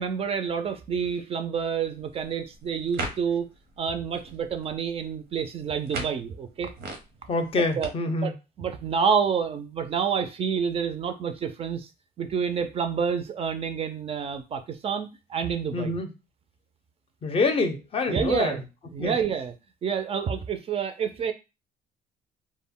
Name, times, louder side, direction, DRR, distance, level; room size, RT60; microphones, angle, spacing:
voice 1, 0.0-3.5 3.8-6.7 7.8-7.9 8.2-8.3 8.6-11.9 12.2-16.0 18.1-18.6 18.9-19.5 19.8-21.3, right 6 dB, 35° right, 7 dB, 0.4 m, -28 dB
sound 1, 1.8-7.9, right 3 dB, 85° right, 0.8 m, -40 dB
voice 2, 7.3-8.3 15.7-16.1 17.2-18.6 19.0-19.2, left 3 dB, 35° left, 7 dB, 0.5 m, -26 dB
2.1 x 2.0 x 3.6 m, 0.27 s
cardioid pair, 110°, 17 cm